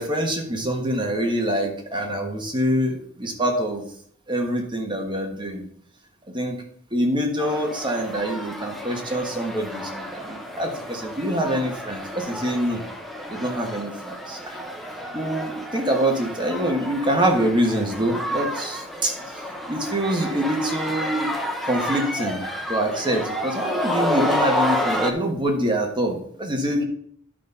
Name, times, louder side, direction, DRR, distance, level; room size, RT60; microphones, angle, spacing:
voice 1, 0.0-3.9 4.3-5.6 6.3-6.6 6.9-12.8 13.3-14.6 15.1-19.1 19.7-21.3 21.6-22.4 22.7-26.8, right 1 dB, 20° right, 2 dB, 1.3 m, -25 dB
sound 1, 7.4-25.1, equal, ahead, 0.9 m, -30 dB
11.0 x 4.1 x 5.4 m, 0.62 s
head